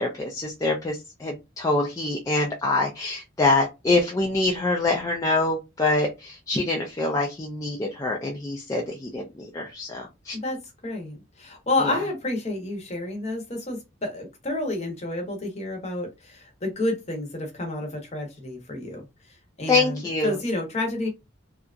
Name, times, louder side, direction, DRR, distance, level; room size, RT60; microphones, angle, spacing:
voice 1, 0.0-10.4 11.8-12.0 19.7-20.4, left 2 dB, 15° left, 0.4 m, -25 dB
voice 2, 10.8-19.0 19.6-21.1, left 2 dB, 35° left, 0.8 m, -30 dB
2.8 x 2.3 x 2.4 m
head